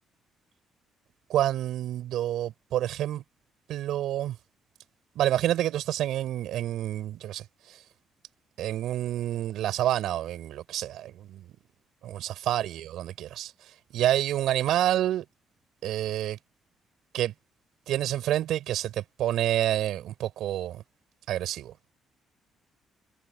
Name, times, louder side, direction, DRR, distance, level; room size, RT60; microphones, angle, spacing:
voice 1, 1.3-3.2 3.7-4.4 5.1-7.8 8.6-11.4 12.0-13.5 13.9-15.2 15.8-16.4 17.1-17.3 17.9-20.8 21.3-21.7, right 12 dB, 80° right, 6.2 m, -28 dB
cardioid pair, 90°, 0 cm